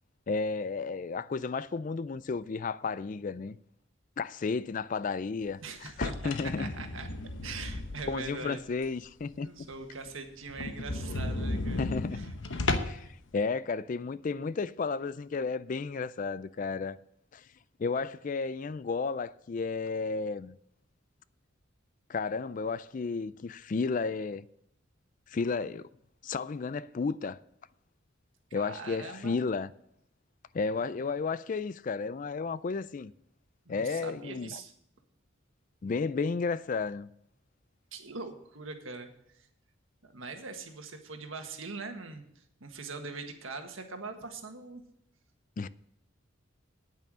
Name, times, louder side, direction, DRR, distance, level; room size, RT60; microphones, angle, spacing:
voice 1, 0.3-3.6 4.2-6.7 8.1-9.5 11.8-12.2 12.9-13.1 13.3-17.0 17.3-17.4 17.8-20.6 22.1-24.4 25.3-25.9 26.2-27.4 28.5-29.7 30.5-33.1 33.7-34.6 35.8-37.1 45.6-45.7, left 4 dB, 40° left, 0.3 m, -33 dB
voice 2, 5.6-7.1 7.4-8.6 9.4-12.3 13.0-13.1 28.5-29.4 33.6-34.7 37.9-39.5 40.0-44.8, right 4 dB, 80° right, 1.6 m, -42 dB
sound 1, 5.9-8.4 8.8-8.9 9.4-9.5 9.7-9.8 10.1-10.2 10.5-13.1, left 2 dB, 65° left, 1.0 m, -34 dB
9.3 x 8.9 x 6.2 m
head